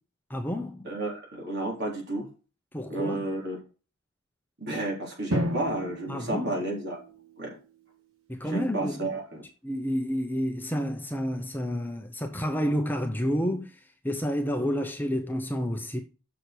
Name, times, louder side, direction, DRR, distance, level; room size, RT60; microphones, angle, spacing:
voice 1, 0.3-0.9 2.7-3.3 6.1-6.6 8.3-9.1 9.6-13.8 14.0-16.0, equal, 10° left, 0.8 m, -30 dB
voice 2, 0.8-2.3 2.9-3.6 4.6-7.0 7.4-7.6 8.4-9.4, right 2 dB, 50° right, 3.8 m, -32 dB
Drum, 5.3-7.8, equal, 75° right, 2.1 m, -33 dB
6.7 x 6.4 x 4.4 m
head